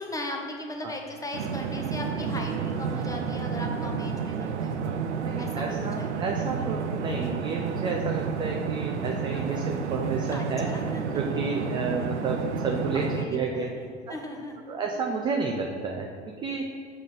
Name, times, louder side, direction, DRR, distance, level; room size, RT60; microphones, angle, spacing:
voice 1, 0.0-4.8 5.4-6.1 9.1-9.8 10.3-11.2 11.6-11.9 12.9-14.7, left 1 dB, 10° left, 2 dB, 0.9 m, -38 dB
sound 1, 1.3-13.2, right 6 dB, 75° right, 0.5 m, -30 dB
voice 2, 5.2-13.7 14.1-14.2 14.7-16.1 16.4-16.7, right 4 dB, 15° right, 1 dB, 0.3 m, -31 dB
6.6 x 3.7 x 5.3 m, 2.2 s
figure-of-eight pair, 80°, 35 cm